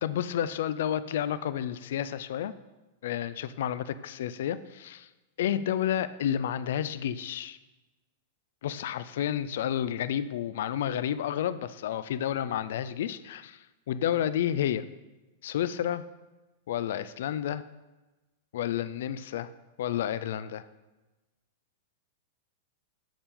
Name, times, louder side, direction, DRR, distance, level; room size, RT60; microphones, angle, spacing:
voice 1, 0.0-2.5 3.0-5.1 5.4-7.6 8.6-14.9 15.4-16.0 16.7-17.6 18.5-19.5 19.8-20.6, left 10 dB, 70° left, 15 dB, 0.3 m, -30 dB
7.0 x 6.9 x 3.7 m, 1.1 s
supercardioid pair, 155°, 0 cm